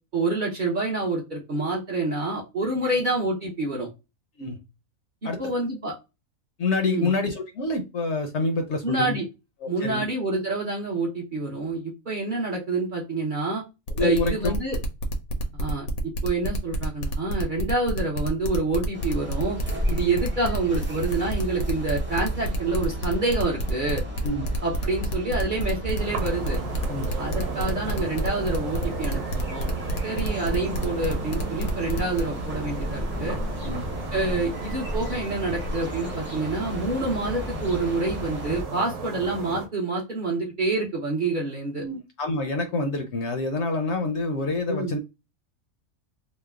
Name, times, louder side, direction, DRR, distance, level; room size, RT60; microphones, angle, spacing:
voice 1, 0.1-3.9 5.2-5.9 6.8-7.1 8.8-9.2 9.7-13.6 14.0-14.8 15.6-15.9 16.2-19.6 19.9-24.0 24.6-26.6 27.2-29.7 30.0-33.4 34.1-41.8 44.7-45.0, right 2 dB, 45° right, 0.8 m, -27 dB
voice 2, 6.6-9.2 9.6-10.1 14.0-14.5 24.2-24.4 26.9-27.1 33.6-33.8 41.8-45.0, left 3 dB, 65° left, 0.8 m, -27 dB
sound 1, 13.9-32.2, equal, 85° left, 1.2 m, -29 dB
sound 2, 18.9-38.6, equal, 15° right, 0.4 m, -34 dB
sound 3, 26.0-39.7, right 3 dB, 60° right, 1.1 m, -35 dB
3.1 x 2.0 x 3.4 m
omnidirectional pair, 1.5 m